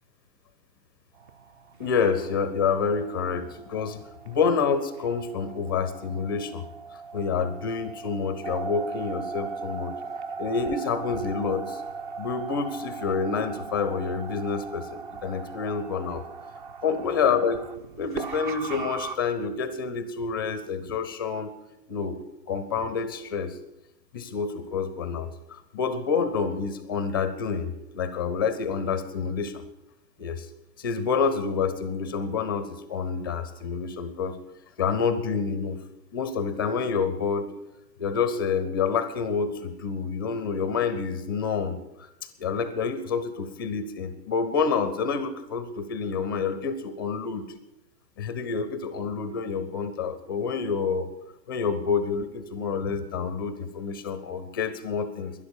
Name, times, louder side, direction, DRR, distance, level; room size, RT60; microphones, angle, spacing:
sound 1, 1.2-19.2, right 5 dB, 30° right, 0.6 m, -39 dB
voice 1, 1.8-4.0 4.3-6.6 7.1-9.9 10.4-11.8 12.2-16.2 16.8-17.6 18.0-21.5 21.9-22.2 22.5-23.6 24.1-29.6 30.2-30.5 30.8-34.4 34.8-35.8 36.1-37.5 38.0-42.1 42.4-47.5 48.2-51.1 51.5-55.3, left 5 dB, 15° left, 13 dB, 0.5 m, -28 dB
12.0 x 11.0 x 8.4 m, 0.93 s
figure-of-eight pair, 120°, 49 cm